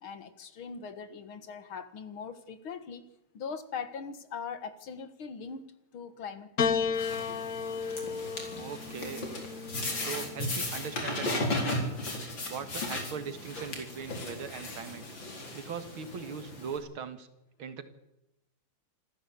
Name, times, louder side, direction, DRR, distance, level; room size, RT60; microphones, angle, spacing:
voice 1, 0.0-3.1 3.3-5.7 5.9-7.4, left 6 dB, 90° left, 11 dB, 2.5 m, -41 dB
Piano, 6.6-11.1 12.1-12.8, left 6 dB, 50° left, 1.4 m, -34 dB
sound 1, 6.9-16.8, left 1 dB, 65° left, 4.9 m, -36 dB
voice 2, 8.6-9.3 10.0-11.9 12.5-15.0 15.5-17.3 17.6-17.8, right 6 dB, 85° right, 10 dB, 2.6 m, -40 dB
26.5 x 14.0 x 8.3 m, 0.89 s
omnidirectional pair, 2.2 m